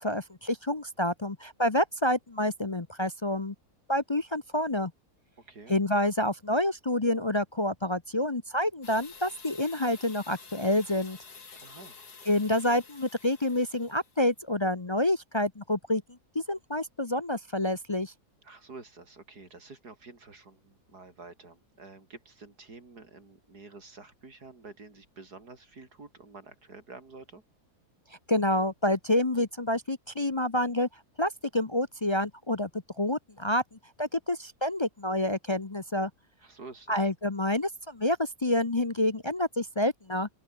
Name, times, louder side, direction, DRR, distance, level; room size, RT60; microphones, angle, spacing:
voice 1, 0.0-3.5 3.9-4.9 5.7-11.2 12.3-16.0 16.3-18.1 28.3-30.9 31.2-32.7 33.0-33.6 34.0-36.1 36.9-40.3, left 1 dB, 25° left, 0.7 m, -28 dB
sound 1, 8.8-14.2, left 5 dB, 80° left, 3.3 m, -49 dB
voice 2, 11.6-12.0 18.4-27.4 36.4-37.1, right 3 dB, 85° right, 4.6 m, -49 dB
open air
omnidirectional pair, 1.6 m